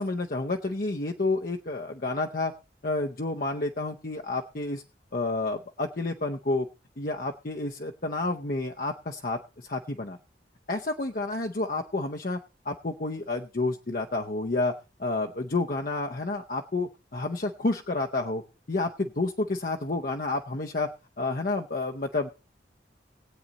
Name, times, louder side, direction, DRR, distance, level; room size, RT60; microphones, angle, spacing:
voice 1, 0.0-2.5 2.8-4.8 5.1-6.7 7.0-10.2 10.7-12.4 12.6-14.7 15.0-18.4 18.7-20.9 21.2-22.3, left 2 dB, 50° left, 3 dB, 0.7 m, -30 dB
19.5 x 8.7 x 4.0 m, 0.32 s
head